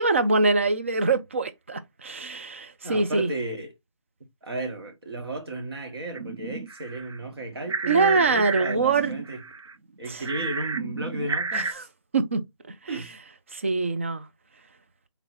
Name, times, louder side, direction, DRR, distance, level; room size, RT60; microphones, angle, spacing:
voice 1, 0.0-3.3 7.9-9.1 10.1-10.2 11.5-11.8 12.1-12.4 12.9-13.0 13.5-14.3, right 3 dB, 25° right, 0.4 m, -24 dB
voice 2, 2.8-3.7 4.4-9.4 10.0-11.9 12.9-13.1, right 2 dB, 55° right, 1.5 m, -34 dB
sound 1, 6.1-7.2 7.5-10.0 10.2-11.7, right 4 dB, 75° right, 0.5 m, -32 dB
3.9 x 2.9 x 4.4 m
figure-of-eight pair, 160°, 16 cm